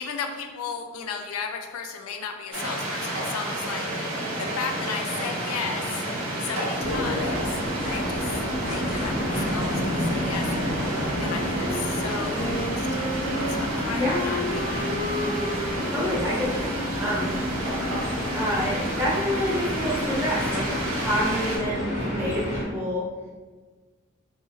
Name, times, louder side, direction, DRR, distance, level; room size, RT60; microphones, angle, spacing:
voice 1, 0.0-3.9 4.4-6.0 6.4-7.6 7.9-8.3 8.7-10.7 11.2-15.2, left 6 dB, 90° left, 5 dB, 0.4 m, -35 dB
sound 1, 2.5-21.6, right 1 dB, 70° right, 0.7 m, -30 dB
sound 2, 6.8-22.6, equal, 35° left, 0.9 m, -30 dB
Wind instrument woodwind instrument, 11.9-18.6, left 1 dB, 55° left, 1.3 m, -34 dB
voice 2, 15.9-17.4 18.3-23.0, equal, 10° right, -7 dB, 0.5 m, -28 dB
2.7 x 2.3 x 3.0 m, 1.4 s
head